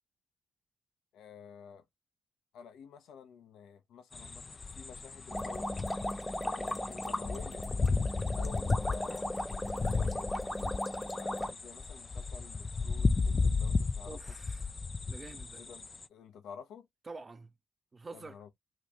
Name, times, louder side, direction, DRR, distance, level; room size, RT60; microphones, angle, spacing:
voice 1, 1.1-1.8 2.5-5.7 6.4-7.7 8.3-10.8 11.1-14.2 15.6-16.9 18.1-18.5, left 7 dB, 80° left, 0.8 m, -51 dB
sound 1, 4.1-16.1, left 4 dB, 40° left, 0.4 m, -34 dB
sound 2, 5.3-11.5, left 1 dB, 15° left, 0.8 m, -37 dB
voice 2, 14.0-14.8 15.1-15.6 17.0-17.5 17.9-18.4, right 3 dB, 40° right, 0.7 m, -47 dB
3.1 x 2.5 x 3.3 m
supercardioid pair, 45°, 0 cm